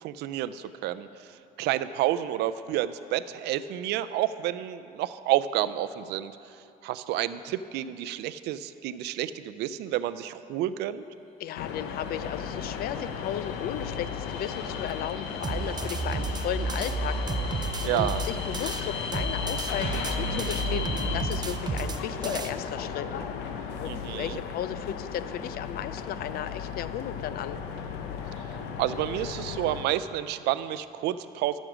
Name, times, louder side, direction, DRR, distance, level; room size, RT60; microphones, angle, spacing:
voice 1, 0.0-6.3 6.8-11.0 17.8-18.2 23.8-24.4 28.8-31.6, right 13 dB, 80° right, 14 dB, 0.4 m, -30 dB
voice 2, 11.4-17.2 17.9-23.1 23.8-27.6, left 10 dB, 65° left, 14 dB, 0.4 m, -35 dB
sound 1, 11.6-29.9, left 7 dB, 90° left, 0.8 m, -35 dB
sound 2, 11.7-21.2, left 4 dB, 40° left, 1.8 m, -40 dB
sound 3, 15.4-18.8 19.1-22.5, right 4 dB, 25° right, 0.6 m, -32 dB
14.0 x 6.3 x 5.0 m, 2.6 s
cardioid pair, 110°, 17 cm